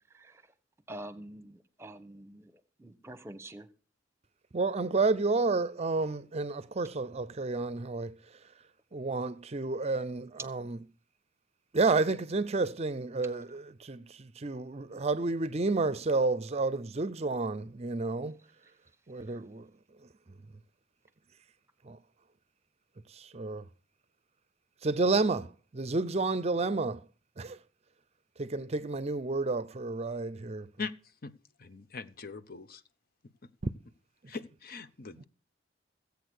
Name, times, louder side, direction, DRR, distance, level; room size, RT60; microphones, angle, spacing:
voice 1, 0.9-2.5 2.8-3.7, right 1 dB, 15° right, 1.1 m, -46 dB
voice 2, 4.5-8.2 8.9-10.8 11.7-18.4 19.1-19.7 21.8-22.0 23.1-23.6 24.8-27.0 27.4-27.6 28.4-30.7, right 3 dB, 35° right, 0.6 m, -30 dB
voice 3, 30.8-31.3 31.6-32.8 34.3-35.2, left 4 dB, 50° left, 0.9 m, -41 dB
16.0 x 8.3 x 6.4 m
head